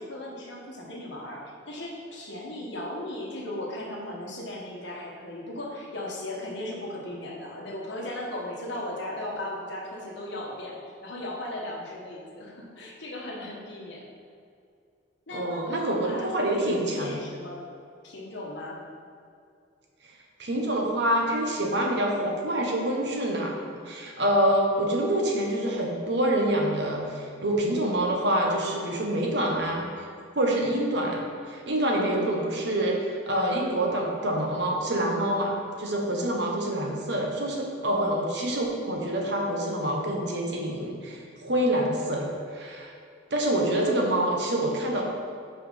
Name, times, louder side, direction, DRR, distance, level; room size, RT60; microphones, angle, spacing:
voice 1, 0.0-14.1 15.3-17.7 18.0-18.8, left 1 dB, 60° left, -2 dB, 1.3 m, -37 dB
voice 2, 15.3-17.1 20.4-23.5 23.9-30.1 30.3-42.9 43.3-45.0, right 1 dB, 55° right, 0 dB, 1.1 m, -26 dB
5.8 x 4.8 x 5.5 m, 2.3 s
head